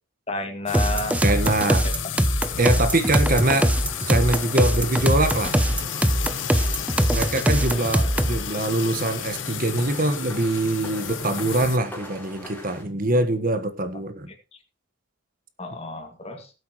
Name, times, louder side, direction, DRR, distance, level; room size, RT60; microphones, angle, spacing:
voice 1, 0.3-1.2 1.6-2.0 2.8-2.9 14.3-14.4 15.6-16.5, left 2 dB, 30° left, 5 dB, 2.2 m, -32 dB
sound 1, 0.7-11.8, left 8 dB, 65° left, 1.0 m, -32 dB
sound 2, 0.7-8.4, right 1 dB, 5° right, 0.6 m, -22 dB
voice 2, 1.2-1.8 2.6-3.7 4.1-5.6 7.1-14.3, right 2 dB, 45° right, 9 dB, 1.4 m, -23 dB
sound 3, 3.6-12.8, left 1 dB, 10° left, 4.0 m, -42 dB
18.5 x 8.0 x 3.1 m, 0.32 s
head